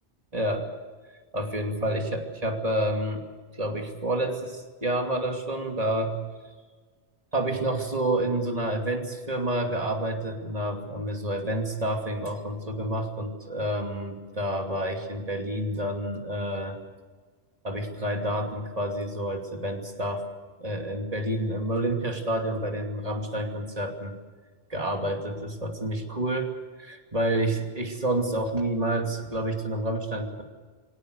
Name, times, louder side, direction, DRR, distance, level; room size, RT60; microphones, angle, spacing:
voice 1, 0.3-0.7 1.3-3.2 3.6-6.2 7.3-16.8 17.6-20.2 20.6-24.2 24.7-26.5 26.8-30.4, right 1 dB, 35° right, 3 dB, 2.8 m, -29 dB
24.5 x 17.5 x 8.1 m, 1.5 s
omnidirectional pair, 1.1 m